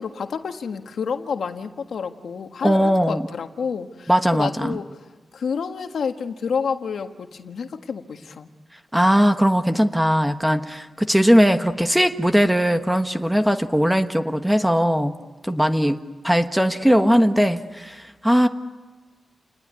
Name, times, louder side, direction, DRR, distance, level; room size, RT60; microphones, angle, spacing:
voice 1, 0.0-4.9 5.3-8.5, left 6 dB, 75° left, 6 dB, 1.6 m, -29 dB
voice 2, 2.6-3.3 4.1-4.8 8.9-15.1 15.4-16.0 16.2-18.5, equal, 5° right, 7 dB, 1.3 m, -19 dB
29.5 x 20.5 x 9.6 m, 1.3 s
wide cardioid pair, 140°, 0 cm